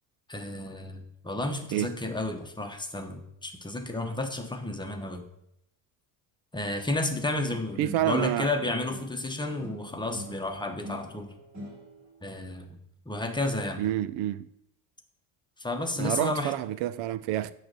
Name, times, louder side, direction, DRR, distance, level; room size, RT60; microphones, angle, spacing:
voice 1, 0.3-5.3 6.5-11.3 12.2-12.8 13.1-13.8 15.6-16.5, left 2 dB, 10° left, 0.9 m, -32 dB
voice 2, 7.8-8.5 13.8-14.5 16.0-17.5, right 13 dB, 85° right, 0.5 m, -28 dB
sound 1, 8.5-9.3 9.6-12.2, equal, 40° right, 2.9 m, -44 dB
9.2 x 3.2 x 6.7 m
cardioid pair, 110°, 46 cm